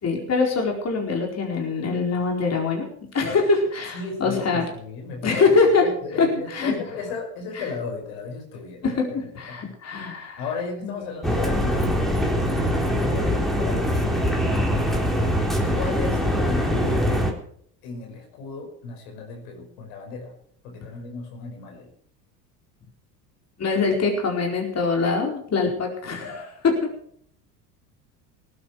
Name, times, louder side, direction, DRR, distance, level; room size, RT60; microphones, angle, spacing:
voice 1, 0.0-2.9 3.1-4.6 5.2-5.9 6.2-6.7 7.5-7.6 8.8-10.4 10.8-10.9 23.6-26.9, left 4 dB, 30° left, 1 dB, 4.7 m, -23 dB
voice 2, 3.9-5.4 5.8-9.2 9.5-9.6 10.4-12.2 12.9-13.8 15.7-17.3 17.8-20.3 20.6-21.9, left 4 dB, 65° left, 3 dB, 5.6 m, -34 dB
sound 1, 11.2-17.3, equal, ahead, 3.7 m, -23 dB
19.0 x 9.8 x 6.0 m, 0.63 s
hypercardioid pair, 75°, 48 cm